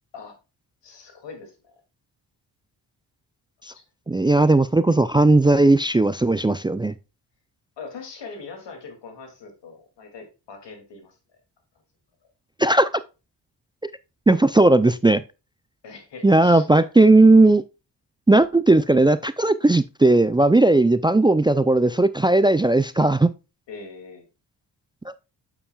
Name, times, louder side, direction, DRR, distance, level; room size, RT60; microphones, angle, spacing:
voice 1, 0.8-1.8 3.7-3.8 7.8-11.2 15.8-16.9 23.7-24.3, left 4 dB, 80° left, 2.6 m, -41 dB
voice 2, 4.1-7.0 12.6-12.9 14.3-15.2 16.2-17.6 18.3-23.3, right 2 dB, 10° right, 0.4 m, -17 dB
8.7 x 7.0 x 2.3 m
cardioid pair, 55°, 42 cm